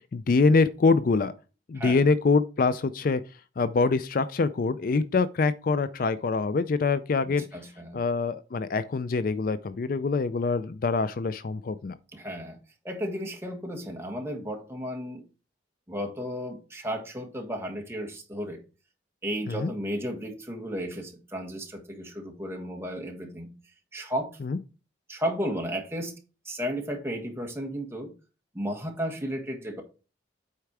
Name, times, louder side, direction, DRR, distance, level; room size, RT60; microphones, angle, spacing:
voice 1, 0.1-1.3 1.7-3.2 3.6-7.4 7.9-11.9 19.5-19.7 24.4-24.6, left 4 dB, 50° left, 0.4 m, -24 dB
voice 2, 7.3-8.0 12.1-12.6 12.8-15.2 15.9-18.6 19.2-23.5 23.9-24.4 25.1-26.1 26.4-28.1 28.5-29.8, equal, 15° right, 1.6 m, -33 dB
8.3 x 4.4 x 4.7 m
head